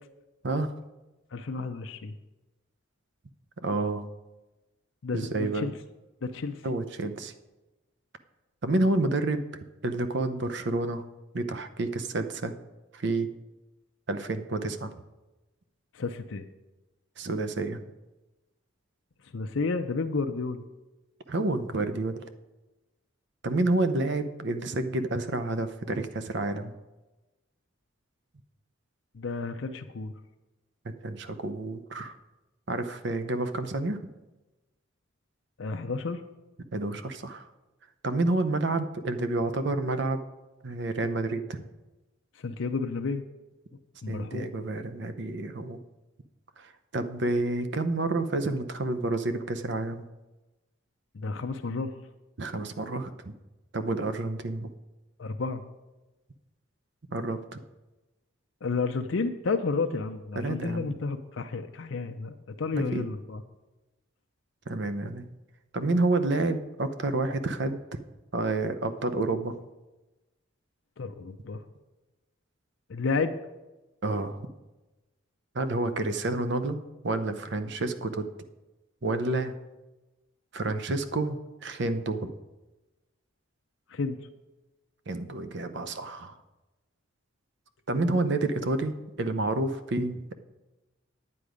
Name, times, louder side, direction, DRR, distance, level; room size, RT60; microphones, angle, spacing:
voice 1, 1.3-2.1 5.0-5.7 6.2-6.6 15.9-16.4 19.3-20.6 29.1-30.1 35.6-36.2 42.4-43.2 44.0-44.5 51.1-51.9 55.2-55.6 58.6-63.4 71.0-71.6 72.9-73.3 83.9-84.2, left 4 dB, 65° left, 6 dB, 0.6 m, -31 dB
voice 2, 3.6-4.0 5.1-5.7 6.6-7.3 8.6-9.4 9.8-11.0 11.3-12.5 12.9-13.3 14.1-14.9 17.2-17.8 21.3-22.2 23.4-26.7 30.8-32.1 32.7-34.0 36.7-37.5 38.0-40.2 40.6-41.4 44.1-45.8 46.6-50.1 52.4-53.3 53.7-54.7 57.1-57.6 60.4-60.9 62.7-63.1 64.7-65.3 65.7-67.8 68.3-69.5 74.0-74.4 75.5-76.8 77.0-78.2 79.0-79.6 80.5-82.3 85.1-86.4 87.9-90.3, right 2 dB, 55° right, 10 dB, 0.7 m, -29 dB
9.8 x 9.3 x 5.0 m, 1.1 s
head